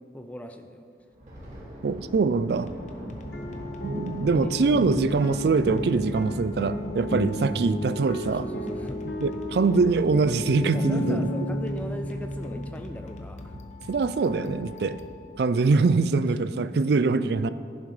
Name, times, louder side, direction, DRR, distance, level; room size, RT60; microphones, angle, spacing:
voice 1, 0.1-0.8 3.0-3.2 4.4-4.6 4.9-5.1 8.2-9.0 10.7-13.6 16.2-16.3, equal, 10° left, 6 dB, 0.5 m, -39 dB
Thunder, 1.0-10.1 10.4-10.6 11.0-11.3 11.9-12.3, equal, 40° right, 2.2 m, -44 dB
voice 2, 1.8-2.7 3.8-8.5 9.2-11.3 13.9-15.0 15.4-17.5, right 4 dB, 65° right, 14 dB, 0.4 m, -23 dB
sound 1, 2.7-15.7, left 2 dB, 40° left, 0.8 m, -43 dB
sound 2, 3.2-12.6, equal, 65° left, 1.0 m, -32 dB
11.0 x 11.0 x 3.3 m, 2.4 s
head